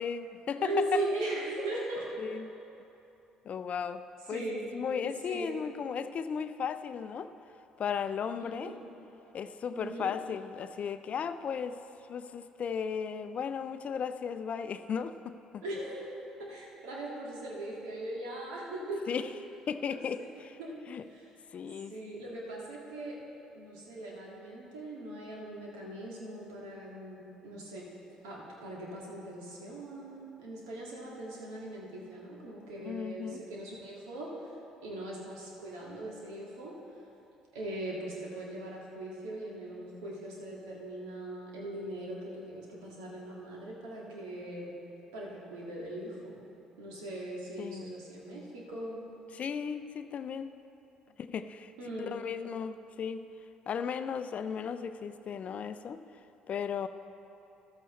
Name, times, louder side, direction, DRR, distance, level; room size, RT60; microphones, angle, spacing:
voice 1, 0.0-1.0 2.2-2.5 3.4-4.0 4.3-4.4 4.7-7.3 7.8-8.7 9.3-11.8 12.1-15.6 19.1-19.3 19.7-20.6 20.9-21.0 21.5-22.0 32.9-33.4 47.6-47.9 49.3-50.5 51.2-51.7 52.0-53.2 53.7-56.0 56.5-56.9, left 7 dB, 45° left, 11 dB, 0.5 m, -35 dB
voice 2, 0.6-2.3 4.3-4.7 5.2-5.6 8.4-8.8 9.7-10.1 15.6-16.1 16.5-19.0 19.8-20.7 21.1-21.3 21.9-23.2 23.5-27.9 28.2-34.3 34.8-36.7 37.5-44.7 45.1-46.4 46.8-49.1 51.8-52.1, right 1 dB, 75° right, -4 dB, 2.1 m, -39 dB
14.0 x 12.5 x 3.2 m, 2.9 s
hypercardioid pair, 50°, 3 cm